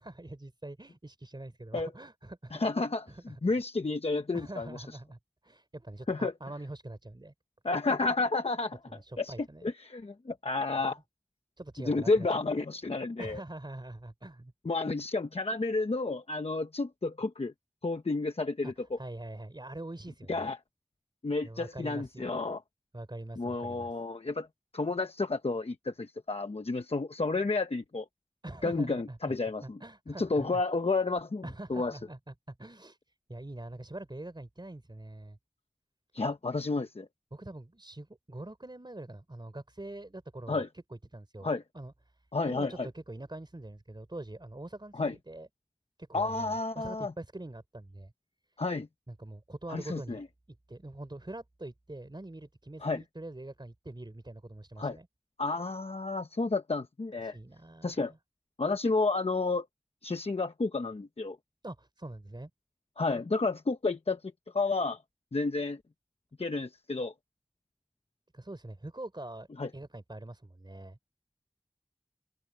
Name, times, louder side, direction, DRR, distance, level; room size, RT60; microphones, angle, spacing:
voice 1, 0.0-2.6 3.1-3.4 4.3-7.3 8.9-9.7 11.6-12.5 13.2-14.5 18.6-20.5 21.4-22.4 22.9-23.9 28.4-29.2 29.6-30.6 31.4-33.0 33.3-35.4 37.3-41.5 41.7-41.9 42.5-45.5 46.0-48.1 49.1-50.2 50.7-55.1 57.2-58.2 61.6-62.5 68.3-69.5 69.7-71.0, right 1 dB, 50° right, 3.8 m, -44 dB
voice 2, 2.5-4.7 6.1-6.3 7.6-9.3 9.6-11.0 11.8-13.4 14.6-17.5 17.8-19.0 20.3-20.6 21.2-22.6 23.4-24.5 24.7-28.1 28.6-29.8 30.2-31.4 31.7-32.0 36.1-37.1 40.5-40.7 41.4-41.6 42.3-42.9 44.9-45.1 46.1-47.1 48.6-48.9 49.7-50.2 52.8-53.0 54.8-55.0 55.4-57.4 57.8-58.1 58.6-59.7 60.0-61.4 63.0-64.2 64.5-65.0 65.3-65.8 66.4-67.1 69.6-69.7, left 3 dB, 85° left, 0.9 m, -31 dB
wide cardioid pair, 40°, 10 cm